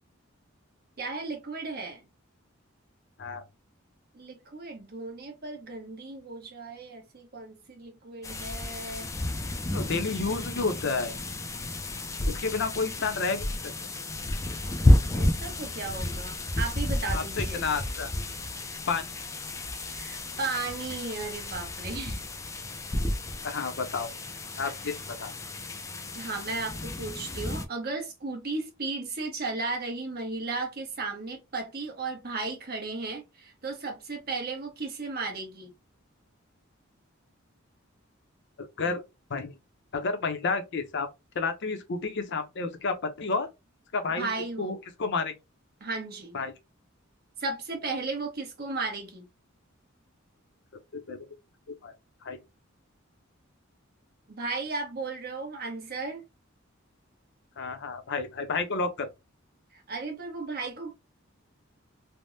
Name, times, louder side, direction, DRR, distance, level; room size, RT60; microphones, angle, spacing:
voice 1, 1.0-2.0 4.1-9.5 15.1-17.6 19.9-22.2 26.1-35.7 44.2-44.8 45.8-46.4 47.4-49.3 54.3-56.2 59.7-60.9, right 3 dB, 50° right, 1.0 m, -35 dB
sound 1, 8.2-27.6, left 1 dB, 15° left, 0.4 m, -31 dB
voice 2, 9.7-11.1 12.3-13.5 17.1-18.1 18.9-19.1 23.4-24.1 24.6-25.3 38.6-39.0 39.3-39.5 39.9-41.1 41.3-43.5 43.9-44.3 44.6-45.3 46.3-46.5 50.9-51.3 51.7-51.9 52.2-52.4 57.6-59.1, left 4 dB, 60° left, 0.6 m, -30 dB
3.4 x 2.0 x 2.6 m
head